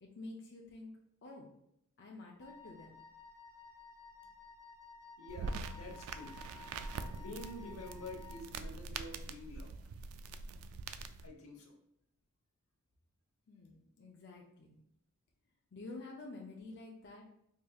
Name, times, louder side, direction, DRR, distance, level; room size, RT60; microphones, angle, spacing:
voice 1, 0.0-0.9 1.2-1.5 2.0-3.0 13.5-14.8 15.7-17.2, left 2 dB, 55° left, -1 dB, 0.5 m, -49 dB
Wind instrument woodwind instrument, 2.4-8.5, left 4 dB, 15° right, 0.6 m, -55 dB
voice 2, 5.2-6.3 7.1-9.7 11.2-11.7, left 1 dB, 90° left, 1 dB, 0.9 m, -48 dB
sound 1, 5.3-11.3, right 4 dB, 75° right, 0.3 m, -44 dB
4.8 x 2.7 x 2.3 m, 0.76 s
head